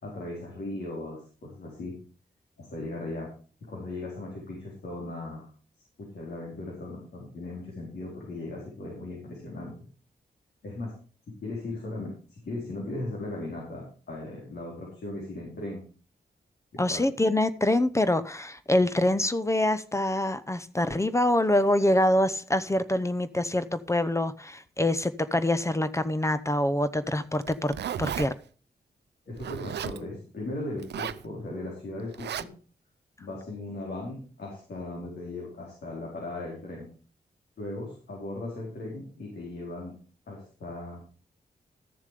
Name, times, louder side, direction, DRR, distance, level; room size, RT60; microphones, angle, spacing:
voice 1, 0.0-1.9 2.6-3.3 3.7-5.5 6.0-9.9 10.6-10.9 11.4-15.8 16.7-17.0 29.3-32.5 33.2-36.9 37.6-39.9 40.3-41.0, left 2 dB, 75° left, 4.4 m, -37 dB
voice 2, 16.8-28.3, left 1 dB, 15° left, 0.8 m, -25 dB
Zipper (clothing), 27.3-28.3 29.4-30.0 30.8-31.3 32.1-32.4, right 9 dB, 85° right, 0.5 m, -34 dB
13.0 x 7.2 x 5.1 m
wide cardioid pair, 90°, 17 cm